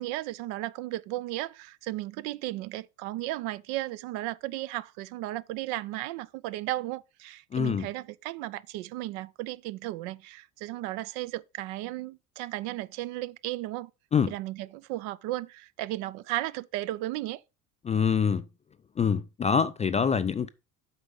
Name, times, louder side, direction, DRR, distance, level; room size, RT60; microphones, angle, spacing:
voice 1, 0.0-13.9 14.3-17.4, right 16 dB, 60° right, 0.6 m, -35 dB
voice 2, 7.5-7.9 14.1-14.3 17.8-18.4 19.0-20.5, left 6 dB, 20° left, 0.3 m, -25 dB
7.9 x 4.8 x 5.4 m
hypercardioid pair, 65°, 43 cm